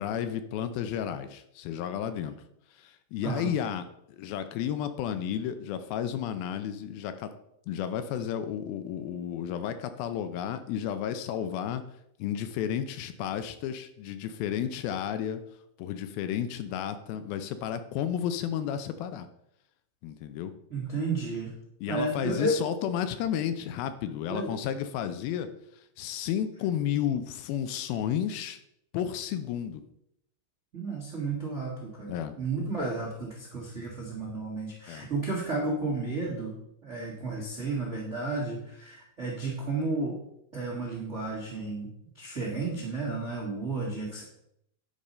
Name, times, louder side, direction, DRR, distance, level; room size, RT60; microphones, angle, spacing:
voice 1, 0.0-2.4 2.7-7.3 7.7-11.8 12.2-15.4 15.8-19.3 20.0-20.5 21.8-28.6 28.9-29.8 32.1-32.4 34.9-35.1, left 9 dB, 80° left, 10 dB, 2.3 m, -32 dB
voice 2, 20.7-21.5 21.9-22.5 24.3-24.5 30.7-36.6 36.8-40.2 40.5-44.2, right 3 dB, 60° right, -4 dB, 0.7 m, -32 dB
10.0 x 5.3 x 4.2 m, 0.76 s
omnidirectional pair, 4.6 m